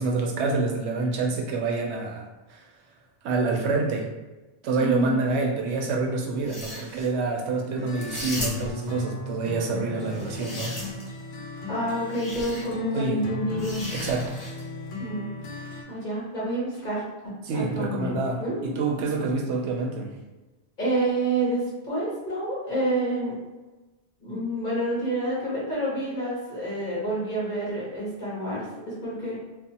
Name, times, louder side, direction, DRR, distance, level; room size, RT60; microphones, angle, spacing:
voice 1, 0.0-2.7 3.2-4.1 4.6-10.7 12.9-13.2 13.9-14.3 17.4-20.1, right 3 dB, 85° right, 1 dB, 0.9 m, -27 dB
voice 2, 4.8-5.2 11.7-13.8 15.0-17.0 17.5-18.6 20.8-23.3 24.2-29.4, right 1 dB, 45° left, -7 dB, 1.4 m, -28 dB
sound 1, 6.4-7.1 8.0-8.9 10.0-11.2 12.1-12.6 13.6-14.7, equal, 20° left, 0.6 m, -36 dB
sound 2, 7.8-15.8, left 2 dB, 70° left, 0.8 m, -36 dB
3.2 x 2.1 x 2.8 m, 1.1 s
omnidirectional pair, 1.1 m